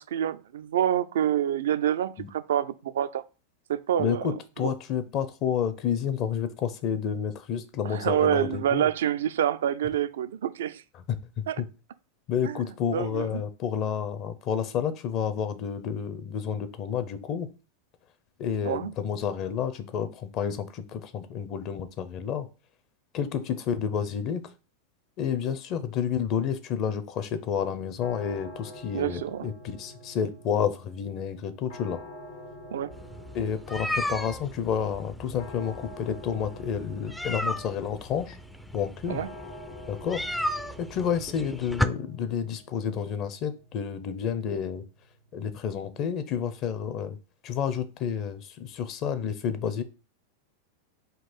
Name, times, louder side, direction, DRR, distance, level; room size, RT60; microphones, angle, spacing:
voice 1, 0.0-3.2 3.7-4.3 4.6-4.7 7.8-10.8 11.5-11.6 12.4-12.6 12.9-13.4 18.6-18.9 28.9-29.5 32.7-32.9 39.1-39.3, right 10 dB, 75° right, 0.3 m, -27 dB
voice 2, 4.0-8.9 10.9-11.7 12.3-17.5 18.4-22.5 23.1-24.5 25.2-32.0 33.3-38.4 38.7-39.2 39.9-40.2 40.8-44.8 45.3-47.2 47.4-49.8, left 8 dB, 45° left, 0.6 m, -30 dB
sound 1, 28.0-46.9, left 1 dB, 80° left, 1.2 m, -48 dB
sound 2, 32.9-41.9, left 1 dB, 5° left, 0.3 m, -35 dB
3.8 x 2.4 x 4.4 m
hypercardioid pair, 105°, 0 cm